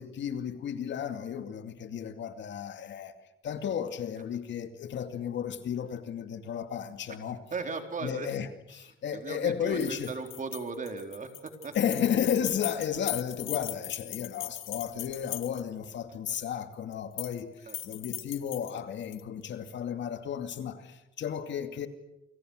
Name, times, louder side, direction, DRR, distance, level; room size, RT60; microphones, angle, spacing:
voice 1, 0.0-3.1 3.4-7.4 8.0-8.5 8.7-10.1 11.7-21.9, left 8 dB, 65° left, 2.6 m, -33 dB
voice 2, 7.5-8.3 8.7-8.8 9.1-11.7 17.7-17.8, right 4 dB, 40° right, 4.3 m, -37 dB
sound 1, 9.7-15.9 16.9-17.4 17.7-19.2, left 15 dB, 90° left, 1.1 m, -39 dB
29.0 x 26.5 x 6.6 m
cardioid pair, 90°, 20 cm